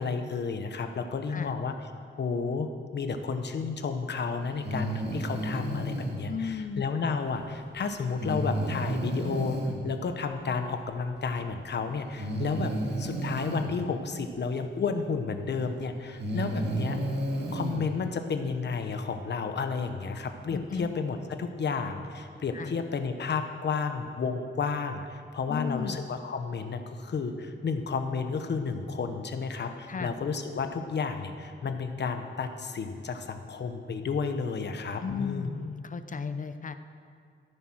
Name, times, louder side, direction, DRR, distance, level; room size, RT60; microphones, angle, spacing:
voice 1, 0.0-1.7 2.2-9.6 9.8-12.7 13.0-17.0 17.5-35.5, left 5 dB, 60° left, 7 dB, 1.2 m, -32 dB
Breathing, 4.6-6.2 8.2-9.8 11.2-11.3 12.2-13.7 15.3-15.4 16.0-17.8, right 1 dB, 55° right, 2.3 m, -31 dB
voice 2, 6.3-6.9 20.5-20.9 22.5-22.7 25.5-26.1 29.9-30.1 35.0-36.7, left 6 dB, 40° left, 10 dB, 0.6 m, -35 dB
13.5 x 10.5 x 6.4 m, 2.3 s
wide cardioid pair, 120°, 20 cm